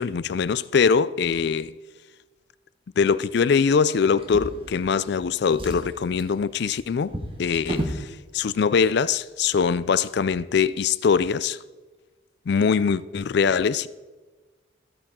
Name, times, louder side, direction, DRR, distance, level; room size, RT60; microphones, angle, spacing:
voice 1, 0.0-1.7 3.0-7.1 7.4-11.6 12.5-13.9, left 6 dB, 55° left, 0.4 m, -22 dB
Drawer open or close, 4.1-5.1 5.5-8.1 9.0-9.1 9.5-9.6, equal, 25° right, 1.4 m, -34 dB
14.5 x 8.7 x 3.7 m
head